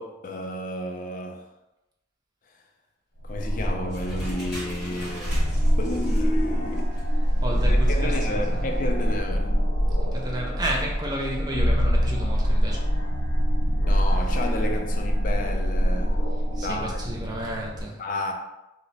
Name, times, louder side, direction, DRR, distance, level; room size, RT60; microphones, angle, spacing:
voice 1, 0.0-1.5 3.2-7.0 7.9-9.5 13.9-16.2 16.6-17.0 18.0-18.3, left 1 dB, 45° left, 0.4 m, -32 dB
sound 1, 3.2-17.8, equal, 85° left, 0.8 m, -24 dB
sound 2, 3.9-8.9, equal, 5° right, 1.1 m, -41 dB
voice 2, 7.4-8.6 10.1-12.8 16.5-18.0, right 1 dB, 20° right, 0.5 m, -32 dB
2.9 x 2.1 x 3.9 m
head